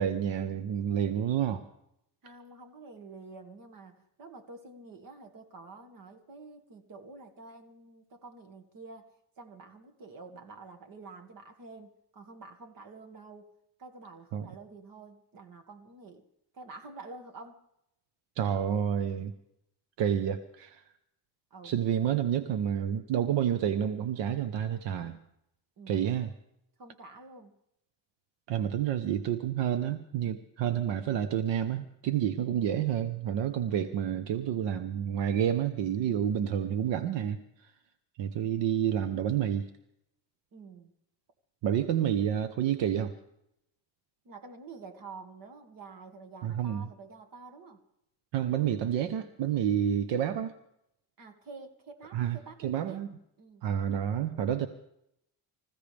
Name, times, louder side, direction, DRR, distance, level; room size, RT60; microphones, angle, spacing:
voice 1, 0.0-1.6 14.3-14.5 18.4-19.3 20.0-20.8 21.6-25.2 25.9-26.3 28.5-37.7 38.2-39.7 41.6-43.1 46.4-46.9 48.3-50.5 52.1-53.1 53.6-54.7, right 9 dB, 80° right, 10 dB, 1.0 m, -29 dB
voice 2, 2.2-9.1 9.4-13.5 13.8-16.3 16.5-17.6 21.5-21.8 25.8-26.1 26.8-27.5 40.5-40.9 44.2-47.8 51.2-53.1 53.4-53.6, right 3 dB, 50° right, 5 dB, 2.2 m, -48 dB
25.5 x 15.5 x 3.5 m, 0.79 s
cardioid pair, 150°, 43 cm